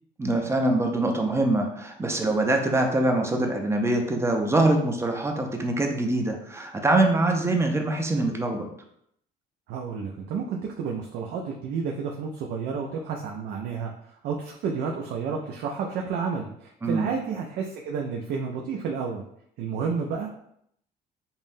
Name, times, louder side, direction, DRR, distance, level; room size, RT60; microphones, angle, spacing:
voice 1, 0.2-8.7 16.8-17.1, right 2 dB, 15° right, 3 dB, 0.6 m, -24 dB
voice 2, 9.7-19.2 19.6-20.4, right 5 dB, 75° right, 0 dB, 0.5 m, -31 dB
5.5 x 2.1 x 2.6 m, 0.71 s
cardioid pair, 110°, 17 cm